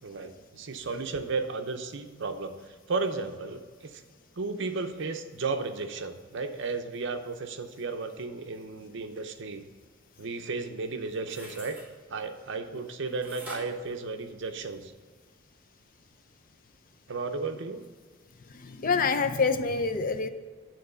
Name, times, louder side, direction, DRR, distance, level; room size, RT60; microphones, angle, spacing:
voice 1, 0.0-2.6 2.9-4.0 4.4-9.6 10.2-11.8 12.1-14.9 17.1-17.8, right 4 dB, 60° right, 7 dB, 0.7 m, -34 dB
sound 1, 11.2-11.9 13.2-14.8 15.2-15.3, right 1 dB, 10° right, 2.4 m, -45 dB
voice 2, 18.4-20.3, left 4 dB, 45° left, 10 dB, 0.5 m, -27 dB
9.3 x 3.9 x 6.7 m, 1.5 s
head